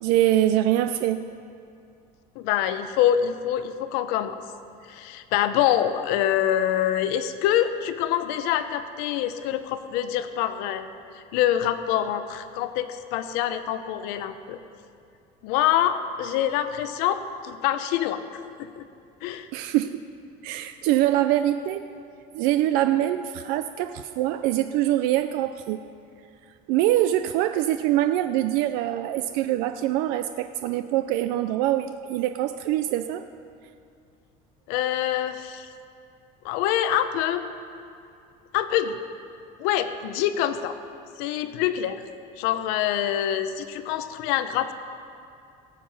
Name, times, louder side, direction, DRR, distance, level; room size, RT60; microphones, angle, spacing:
voice 1, 0.0-1.2 19.5-20.0 20.4-21.9 22.3-25.8 26.7-33.2, right 13 dB, 65° right, 10 dB, 0.4 m, -24 dB
voice 2, 2.4-4.4 4.9-10.9 11.1-14.6 15.4-18.8 19.2-19.5 34.7-35.7 36.4-37.4 38.5-39.0 39.6-40.7 41.2-42.0 42.4-44.7, left 11 dB, 70° left, 10 dB, 0.8 m, -25 dB
18.0 x 7.5 x 5.5 m, 2.5 s
cardioid pair, 175°, 16 cm